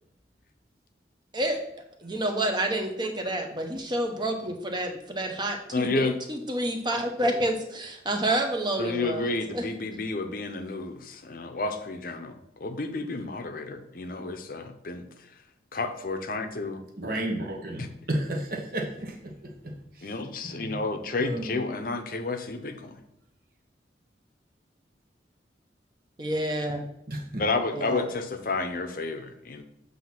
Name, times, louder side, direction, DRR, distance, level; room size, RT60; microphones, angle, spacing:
voice 1, 2.0-9.6 26.2-26.9 27.7-28.0, right 1 dB, 25° right, 4 dB, 0.9 m, -29 dB
voice 2, 5.7-6.2 8.8-15.4 15.7-16.8 17.8-17.9 20.0-23.0 27.4-29.6, left 3 dB, 50° left, 7 dB, 0.7 m, -31 dB
voice 3, 17.0-20.1 20.4-20.8 21.2-21.6 27.1-27.4, right 1 dB, 55° right, 1 dB, 1.2 m, -33 dB
8.0 x 2.8 x 5.8 m, 0.82 s
head